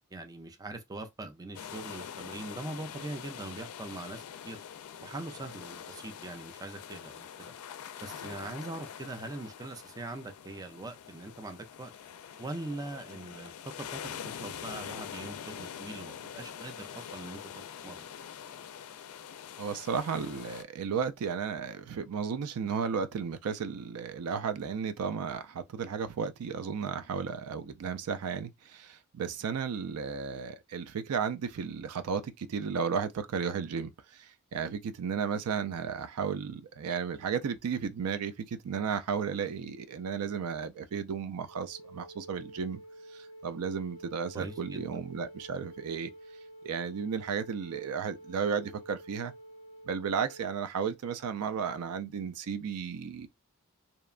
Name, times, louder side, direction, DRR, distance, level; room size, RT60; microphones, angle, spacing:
voice 1, 0.1-4.6 5.0-7.5 8.0-11.9 12.4-18.1 44.3-44.9, right 2 dB, 15° right, 0.4 m, -42 dB
sound 1, 1.5-20.6, left 8 dB, 80° left, 0.4 m, -44 dB
voice 2, 19.6-42.8 43.1-46.1 46.6-49.3 49.9-53.3, right 6 dB, 90° right, 0.4 m, -34 dB
Wind instrument woodwind instrument, 41.4-50.6, right 1 dB, 30° left, 0.7 m, -50 dB
2.8 x 2.1 x 2.3 m
head